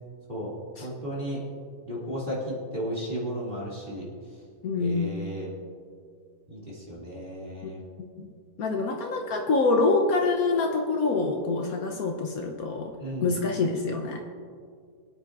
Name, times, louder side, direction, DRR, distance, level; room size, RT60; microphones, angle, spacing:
voice 1, 0.8-1.4 1.9-4.1 4.8-5.5 6.5-7.8 13.0-13.3, equal, 30° right, -6 dB, 2.8 m, -34 dB
voice 2, 4.6-5.1 7.6-7.7 8.2-8.3 8.6-12.9 13.2-14.2, left 3 dB, 70° left, 2 dB, 1.3 m, -26 dB
22.0 x 9.4 x 2.5 m, 2.2 s
omnidirectional pair, 1.7 m